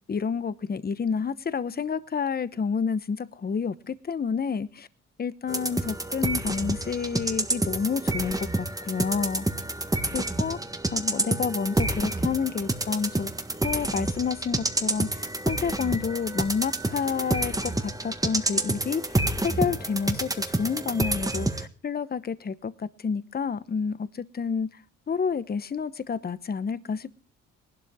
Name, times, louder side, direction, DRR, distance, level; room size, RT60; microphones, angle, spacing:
voice 1, 0.1-4.9 5.2-9.4 10.1-10.6 10.9-13.3 13.6-24.7 25.1-27.2, left 6 dB, 30° left, 15 dB, 1.0 m, -29 dB
sound 1, 5.5-21.7, right 2 dB, 10° right, 1.5 m, -28 dB
19.5 x 12.0 x 3.6 m, 0.34 s
cardioid pair, 90°, 30 cm